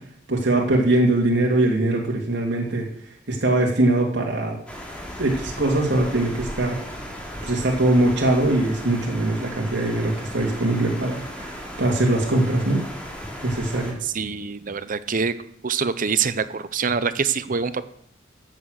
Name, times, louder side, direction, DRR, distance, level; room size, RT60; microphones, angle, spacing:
voice 1, 0.3-2.9 3.3-4.6 5.2-6.8 7.4-12.8 13.4-14.0, right 1 dB, 65° right, -1 dB, 2.3 m, -22 dB
sound 1, 4.7-13.9, equal, 5° left, 3.1 m, -36 dB
voice 2, 14.0-15.4 15.6-17.9, right 5 dB, 45° right, 13 dB, 0.8 m, -25 dB
14.5 x 8.0 x 6.5 m, 0.67 s
head